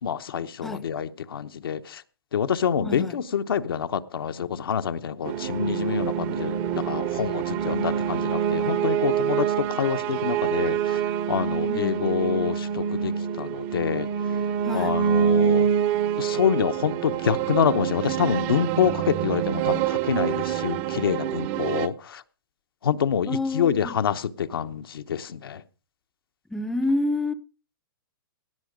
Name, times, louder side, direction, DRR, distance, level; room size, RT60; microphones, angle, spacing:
voice 1, 0.0-2.0 2.3-13.1 13.4-14.1 14.7-15.7 16.2-22.2 22.8-25.6, left 8 dB, 85° left, 0.9 m, -27 dB
voice 2, 2.8-3.2 11.7-12.0 14.6-14.9 23.3-24.0 26.5-27.3, left 2 dB, 5° left, 0.5 m, -28 dB
sound 1, 5.2-21.9, right 9 dB, 35° right, 0.7 m, -26 dB
17.5 x 7.0 x 5.0 m
hypercardioid pair, 140°, 12 cm